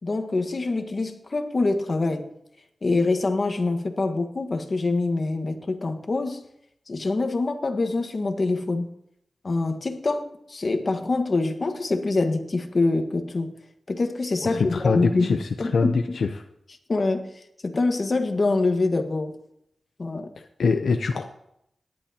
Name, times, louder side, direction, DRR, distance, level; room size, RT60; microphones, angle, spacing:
voice 1, 0.0-2.3 2.8-6.4 6.9-8.9 9.4-13.5 13.9-16.2 16.9-17.3 17.6-19.4 20.0-20.3, left 3 dB, 55° left, 6 dB, 1.5 m, -25 dB
voice 2, 14.5-16.3 20.4-21.3, left 4 dB, 85° left, 6 dB, 0.7 m, -24 dB
18.0 x 11.0 x 2.9 m, 0.77 s
cardioid pair, 60°, 0 cm